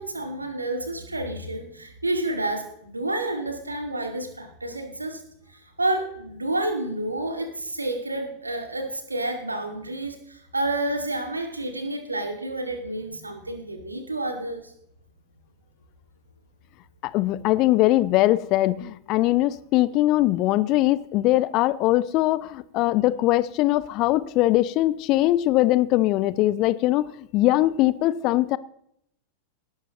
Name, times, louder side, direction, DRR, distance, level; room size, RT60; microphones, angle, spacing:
voice 1, 0.0-5.2 5.5-14.7, right 2 dB, 80° right, 2.1 m, -29 dB
voice 2, 17.0-28.6, left 16 dB, 40° left, 0.6 m, -21 dB
18.5 x 11.5 x 3.0 m
figure-of-eight pair, 90°, 0 cm